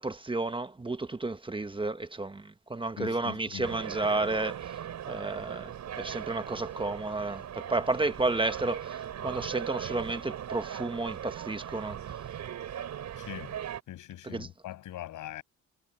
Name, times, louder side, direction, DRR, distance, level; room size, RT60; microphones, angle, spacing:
voice 1, 0.0-12.2 14.2-14.5, right 2 dB, 15° right, 1.2 m, -32 dB
voice 2, 3.0-3.7 13.2-13.6 13.9-15.4, left 13 dB, 80° left, 6.9 m, -41 dB
sound 1, 3.6-13.8, right 10 dB, 65° right, 5.1 m, -39 dB
cardioid pair, 90°, 30 cm